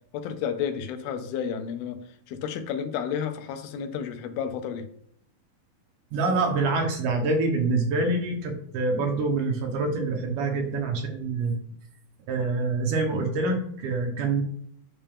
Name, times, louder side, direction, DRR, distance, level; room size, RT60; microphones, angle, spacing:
voice 1, 0.1-2.0 2.3-4.9, left 7 dB, 80° left, 8 dB, 2.6 m, -31 dB
voice 2, 6.1-11.6 12.3-14.4, right 3 dB, 70° right, 3 dB, 2.3 m, -26 dB
8.9 x 5.7 x 3.5 m, 0.64 s
omnidirectional pair, 4.4 m